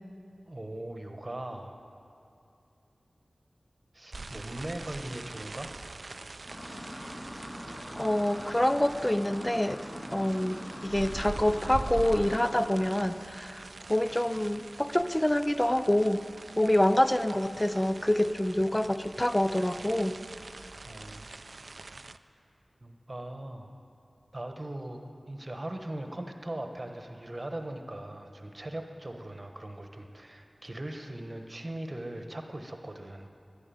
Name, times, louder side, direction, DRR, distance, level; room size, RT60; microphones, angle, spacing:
voice 1, 0.5-1.8 3.9-5.7 20.8-21.3 22.8-23.7 24.3-33.3, right 1 dB, 35° right, 5 dB, 1.2 m, -40 dB
sound 1, 4.1-22.2, right 3 dB, 65° right, 0.4 m, -43 dB
sound 2, 6.5-13.0, equal, 35° left, 2.9 m, -43 dB
voice 2, 8.0-9.8 10.1-16.3 16.6-20.2, left 1 dB, 15° left, 11 dB, 0.5 m, -26 dB
11.5 x 11.0 x 9.2 m, 2.7 s
wide cardioid pair, 55°, 0 cm